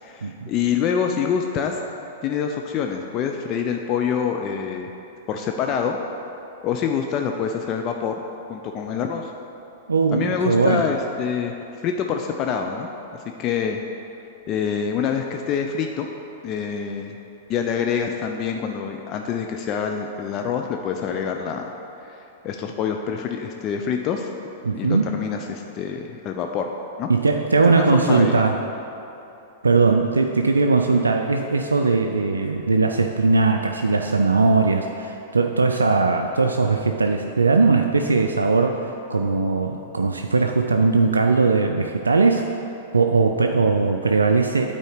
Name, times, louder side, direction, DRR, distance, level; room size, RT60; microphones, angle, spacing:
voice 1, 0.0-1.8 2.2-4.9 5.3-6.0 6.6-8.2 8.5-9.3 10.1-11.6 11.8-13.8 14.5-16.1 16.4-17.2 17.5-24.3 24.7-26.7 27.0-27.1 27.7-28.5, left 7 dB, 35° left, 3 dB, 0.5 m, -26 dB
voice 2, 9.9-10.8 24.7-25.1 27.1-28.6 29.6-42.5 42.9-44.7, right 4 dB, 80° right, 4 dB, 0.3 m, -19 dB
9.0 x 4.2 x 4.9 m, 2.9 s
figure-of-eight pair, 100°, 0 cm